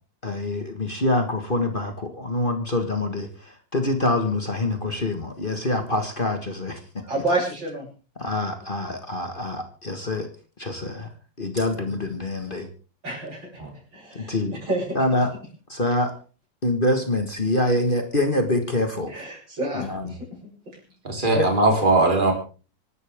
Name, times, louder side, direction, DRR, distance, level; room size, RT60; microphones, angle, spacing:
voice 1, 0.2-6.8 8.2-10.3 10.6-11.1 11.4-12.7 14.1-14.6 15.0-15.3 15.7-16.1 16.6-19.2 19.7-20.1 21.4-21.5, left 2 dB, 30° left, 6 dB, 1.7 m, -25 dB
voice 2, 7.0-7.9 13.0-13.6 13.9-15.0 19.1-20.3, right 2 dB, 85° right, -1 dB, 8.0 m, -29 dB
voice 3, 21.0-22.3, right 2 dB, 25° right, 2 dB, 3.9 m, -19 dB
25.5 x 12.0 x 3.6 m, 0.36 s
omnidirectional pair, 2.0 m